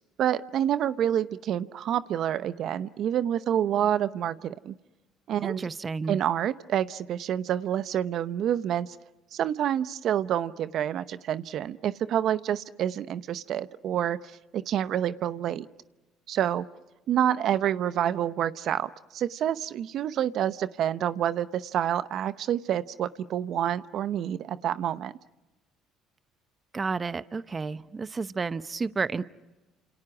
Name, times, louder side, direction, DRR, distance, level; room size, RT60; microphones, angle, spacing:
voice 1, 0.2-4.7 5.3-5.7 6.1-8.9 9.3-14.2 14.5-15.7 16.3-16.6 17.1-25.1, right 10 dB, 60° right, 14 dB, 0.8 m, -28 dB
voice 2, 5.4-6.2 26.7-29.2, right 4 dB, 30° right, 15 dB, 0.8 m, -31 dB
30.0 x 28.0 x 6.0 m, 1.1 s
supercardioid pair, 80°, 0 cm